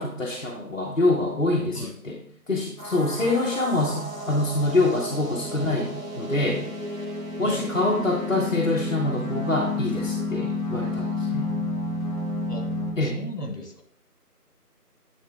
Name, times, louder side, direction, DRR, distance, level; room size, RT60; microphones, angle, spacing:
voice 1, 0.0-2.2 2.5-6.6 7.4-11.5 13.0-13.2, left 2 dB, 55° left, -2 dB, 0.9 m, -25 dB
sound 1, 2.8-12.9, left 2 dB, 60° right, 1.9 m, -31 dB
voice 2, 13.0-13.8, left 1 dB, 75° left, 3 dB, 1.7 m, -36 dB
9.5 x 3.2 x 3.3 m, 0.64 s
figure-of-eight pair, 170°, 47 cm